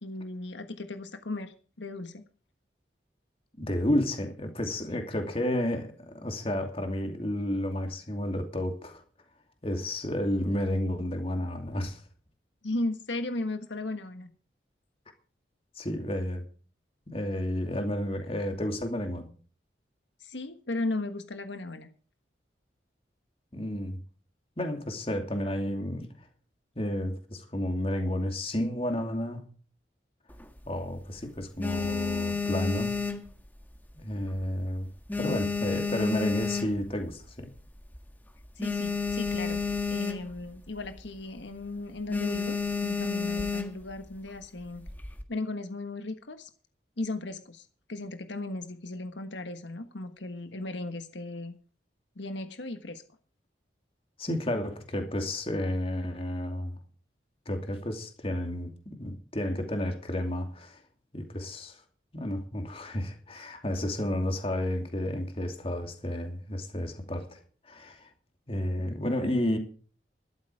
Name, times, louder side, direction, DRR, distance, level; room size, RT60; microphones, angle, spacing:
voice 1, 0.0-2.2 4.9-5.0 12.6-14.3 20.2-21.9 38.6-39.6 39.9-44.8 45.3-46.5 47.0-51.6 52.1-53.0, left 2 dB, 85° left, 1.4 m, -36 dB
voice 2, 3.6-9.0 9.6-12.0 15.8-16.5 17.1-19.3 23.5-24.0 24.6-26.1 26.8-29.4 30.7-33.0 33.9-34.9 35.2-37.5 54.2-56.8 57.5-60.8 61.1-61.8 62.1-67.4 67.7-68.1 68.5-69.6, left 1 dB, 30° left, 2.7 m, -31 dB
sound 1, 30.3-31.0 31.4-33.9 34.2-34.6 34.9-37.1 37.6-37.7 37.9-38.0 38.3-40.5 40.8-41.1 41.4-41.6 42.1-43.9 44.6-45.2, left 4 dB, 10° left, 1.6 m, -31 dB
13.0 x 12.5 x 4.9 m
head